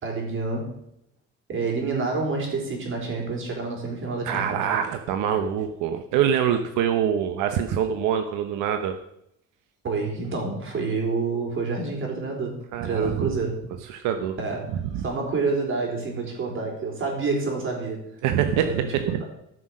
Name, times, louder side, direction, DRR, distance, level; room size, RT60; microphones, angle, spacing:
voice 1, 0.0-0.7 1.5-4.6 9.8-13.5 14.4-18.0 18.6-18.9, right 4 dB, 40° right, 1 dB, 4.1 m, -28 dB
voice 2, 4.3-8.9 12.7-13.3 13.9-14.4 14.8-15.1 18.2-19.2, right 9 dB, 85° right, 7 dB, 1.0 m, -25 dB
13.5 x 6.3 x 6.2 m, 0.76 s
cardioid pair, 130°, 30 cm